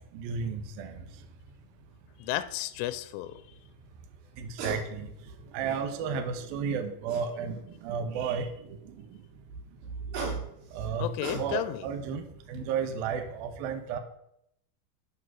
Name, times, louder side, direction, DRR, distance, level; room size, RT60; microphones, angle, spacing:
voice 1, 0.1-1.0 4.4-5.1 5.5-9.0 10.1-10.3 10.7-14.0, right 6 dB, 90° right, 6 dB, 2.1 m, -33 dB
sound 1, 1.4-1.6 4.3-4.8 5.3-6.1 7.1-7.7 9.8-11.9 12.3-12.6, right 3 dB, 65° right, 3.4 m, -39 dB
voice 2, 2.2-3.4 11.0-11.8, left 14 dB, 90° left, 13 dB, 3.1 m, -33 dB
9.8 x 6.1 x 6.1 m, 0.75 s
omnidirectional pair, 5.6 m